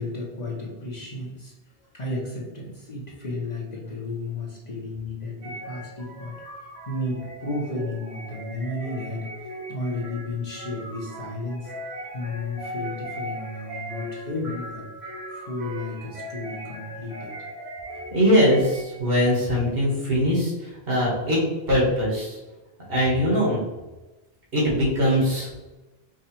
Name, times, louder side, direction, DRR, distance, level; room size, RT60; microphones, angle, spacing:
voice 1, 0.0-1.5 1.8-6.4 6.9-11.7 12.1-14.9 15.3-17.3, left 2 dB, 45° left, -4 dB, 1.0 m, -33 dB
sound 1, 5.4-19.1, equal, 85° right, 1.8 m, -39 dB
voice 2, 18.1-21.4 21.7-22.4 22.9-23.6 24.5-25.6, equal, 65° right, -5 dB, 1.8 m, -21 dB
4.9 x 2.4 x 4.3 m, 1.1 s
omnidirectional pair, 1.1 m